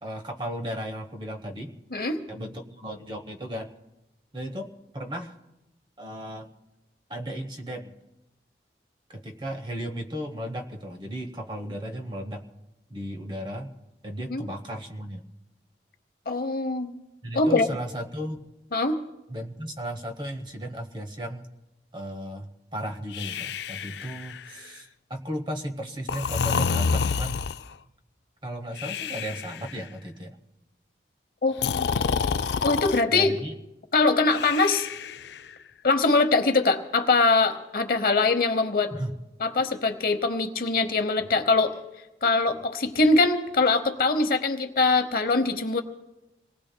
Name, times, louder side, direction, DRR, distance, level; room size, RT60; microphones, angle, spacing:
voice 1, 0.0-1.8 2.3-3.7 4.3-5.3 6.0-6.5 7.1-8.0 9.1-12.4 12.9-13.7 14.0-15.2 17.2-18.5 19.3-21.5 21.9-27.4 28.4-30.4 33.1-33.5 38.9-39.2, equal, 25° right, 5 dB, 1.0 m, -35 dB
voice 2, 16.3-16.9 17.3-17.7 18.7-19.0 31.4-31.9 32.6-33.3 33.9-34.9 35.8-38.9 39.4-41.7 42.2-45.8, left 3 dB, 55° left, 8 dB, 0.9 m, -23 dB
Breathing, 23.1-24.7 26.1-27.7 28.8-29.7 31.5-33.0 34.3-35.5, left 5 dB, 80° left, 0.4 m, -28 dB
27.0 x 19.0 x 2.2 m, 0.99 s
head